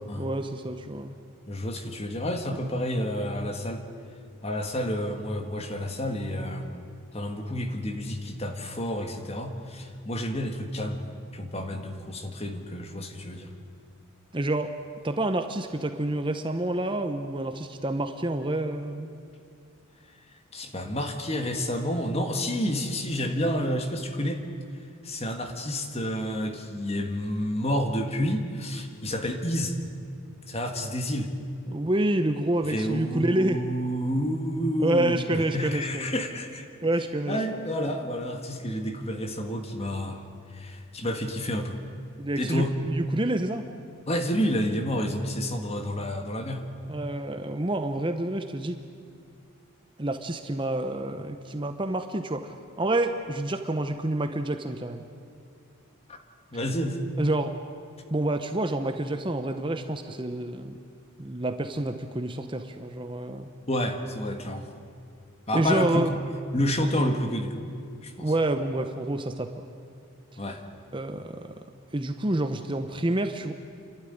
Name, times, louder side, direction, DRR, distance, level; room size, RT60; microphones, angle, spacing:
voice 1, 0.2-1.1 14.3-14.7 15.0-19.1 31.7-33.6 34.8-36.1 36.8-37.4 42.2-43.6 46.9-48.8 50.0-55.1 57.2-57.5 58.1-60.8 61.2-63.5 65.5-66.1 68.2-69.7 70.9-71.6 71.9-73.5, right 1 dB, 20° right, 7 dB, 0.8 m, -28 dB
voice 2, 1.5-3.8 4.4-6.8 7.1-11.0 11.3-13.5 20.5-24.4 25.0-29.8 30.5-31.3 32.7-36.7 37.3-40.2 40.5-41.8 42.4-42.7 44.1-46.6 56.1-56.2 56.5-57.1 63.7-64.7 65.5-66.2 66.5-67.6 68.0-68.3 70.4-70.6, equal, 30° left, 5 dB, 1.8 m, -29 dB
29.5 x 12.0 x 9.9 m, 2.3 s
head